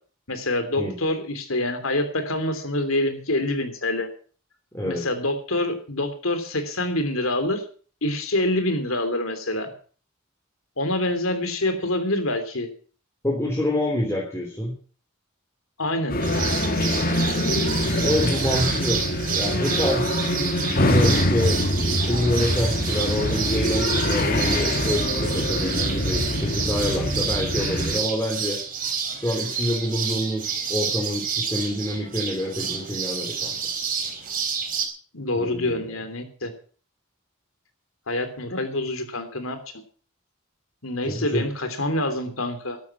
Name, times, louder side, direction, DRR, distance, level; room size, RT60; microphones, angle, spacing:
voice 1, 0.3-4.1 4.8-7.6 8.0-9.7 10.8-12.7 15.8-16.2 35.1-36.5 38.1-39.6 40.8-42.8, left 1 dB, 75° left, 9 dB, 3.2 m, -26 dB
voice 2, 4.7-5.0 13.2-14.7 18.0-19.0 19.4-20.1 20.8-21.6 22.0-28.6 29.2-30.4 30.7-33.5 35.4-35.9 41.1-41.4, left 1 dB, 15° left, -2 dB, 3.3 m, -26 dB
sound 1, 16.1-28.0, left 1 dB, 45° left, 2.3 m, -24 dB
sound 2, 16.2-34.9, right 6 dB, 40° right, 4.0 m, -29 dB
13.5 x 12.5 x 5.9 m, 0.42 s
head